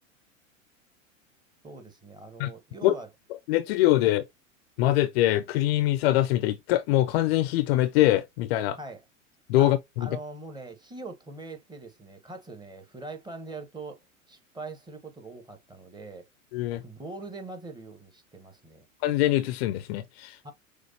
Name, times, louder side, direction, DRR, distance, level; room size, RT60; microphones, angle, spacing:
voice 1, 1.6-3.1 4.0-4.2 8.8-9.0 9.6-9.7 10.0-16.3 16.7-18.9 20.4-20.5, right 3 dB, 10° right, 1.2 m, -42 dB
voice 2, 3.5-4.2 4.8-8.8 9.5-10.1 16.5-16.8 19.0-20.4, left 15 dB, 50° left, 0.6 m, -23 dB
6.3 x 2.4 x 2.6 m
hypercardioid pair, 95°, 40 cm